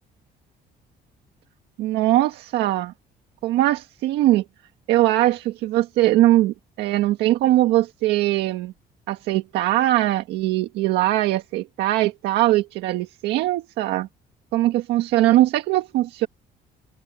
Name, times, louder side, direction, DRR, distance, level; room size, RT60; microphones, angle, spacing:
voice 1, 1.8-2.9 3.4-4.4 4.9-8.7 9.1-14.1 14.5-16.3, right 15 dB, 85° right, 1.7 m, -21 dB
open air
cardioid pair, 110°, 17 cm